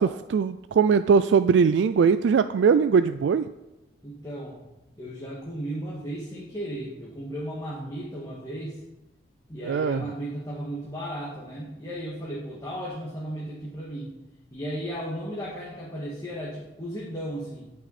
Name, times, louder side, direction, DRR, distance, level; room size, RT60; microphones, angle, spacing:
voice 1, 0.0-3.5 9.6-10.0, right 6 dB, 80° right, 11 dB, 0.3 m, -21 dB
voice 2, 4.0-4.6 5.0-8.8 9.5-14.1 14.5-17.7, equal, 20° left, -5 dB, 1.9 m, -35 dB
17.5 x 6.0 x 4.2 m, 0.99 s
head